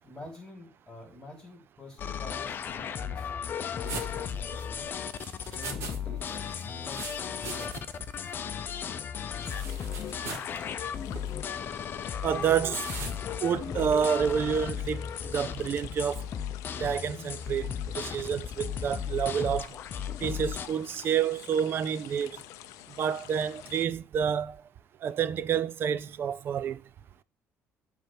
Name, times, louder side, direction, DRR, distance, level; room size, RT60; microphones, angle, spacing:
voice 1, 0.0-3.3 3.7-4.9 5.3-7.8 12.0-12.3 16.7-16.8, left 1 dB, 15° left, 2.8 m, -47 dB
sound 1, 2.0-20.7, left 8 dB, 40° left, 0.6 m, -35 dB
sound 2, 3.9-6.0 6.2-8.0 8.3-8.4 9.4-10.5 11.1-11.3 12.8-13.2, right 4 dB, 65° right, 1.4 m, -41 dB
sound 3, 9.3-23.9, left 14 dB, 90° left, 0.4 m, -48 dB
voice 2, 12.2-12.9 13.4-16.3 16.8-19.8 20.2-22.4 23.0-24.6 25.0-26.8, right 8 dB, 45° right, 0.4 m, -29 dB
7.8 x 3.4 x 6.1 m
cardioid pair, 125°, 5 cm